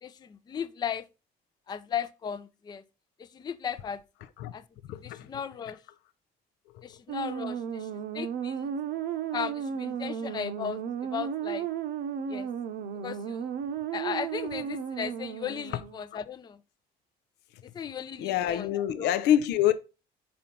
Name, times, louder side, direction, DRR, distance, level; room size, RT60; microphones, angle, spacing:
voice 1, 0.0-1.1 1.7-2.8 3.2-4.0 4.5-4.6 5.0-5.8 6.8-7.9 8.1-8.7 9.3-11.7 12.3-12.5 13.0-13.5 13.9-16.6 17.7-18.7 19.0-19.2, left 7 dB, 25° left, 0.4 m, -36 dB
voice 2, 4.8-5.3 6.7-6.8 15.7-15.8 18.2-19.7, left 11 dB, 85° left, 0.6 m, -26 dB
sound 1, 7.1-16.0, right 8 dB, 70° right, 0.8 m, -34 dB
5.4 x 4.3 x 5.2 m
cardioid pair, 110°, 17 cm